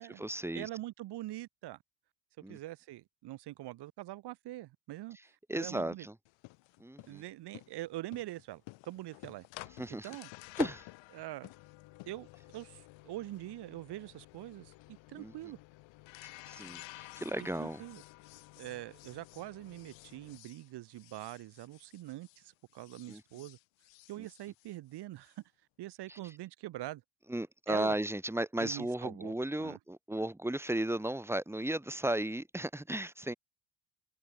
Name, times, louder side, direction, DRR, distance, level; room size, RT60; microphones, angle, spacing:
voice 1, 0.0-0.7 2.4-2.6 5.5-6.1 6.8-7.2 9.8-10.1 10.6-10.9 15.2-15.3 16.5-17.8 23.1-23.2 24.2-24.3 26.1-26.2 27.3-33.3, right 1 dB, 5° right, 2.2 m, -35 dB
voice 2, 0.5-1.8 2.5-5.2 5.5-6.1 7.1-9.4 10.0-10.3 11.1-11.5 12.1-15.6 17.4-18.0 18.6-23.6 24.1-25.4 25.8-27.0 27.7-28.0 28.6-29.3 29.6-29.8, right 16 dB, 50° right, 1.4 m, -44 dB
sound 1, 6.3-22.5 22.7-25.3, left 21 dB, 60° left, 2.0 m, -50 dB
open air
hypercardioid pair, 65°, 50 cm